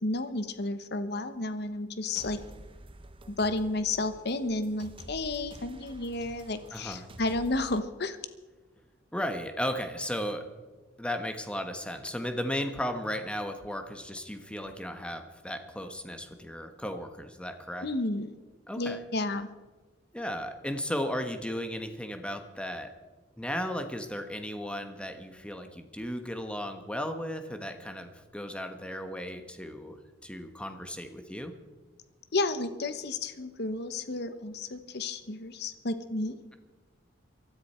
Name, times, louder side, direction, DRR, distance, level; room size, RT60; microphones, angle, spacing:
voice 1, 0.0-2.4 3.3-8.2 17.8-18.3 18.8-19.5 32.3-36.4, left 2 dB, 60° left, 11 dB, 1.0 m, -32 dB
sound 1, 2.2-7.8, right 1 dB, 30° right, 0.9 m, -49 dB
voice 2, 6.7-7.1 9.1-10.5 11.0-17.9 18.7-19.0 20.1-23.0 23.4-31.5, equal, 5° left, 7 dB, 1.3 m, -35 dB
22.5 x 13.5 x 4.4 m, 1.3 s
head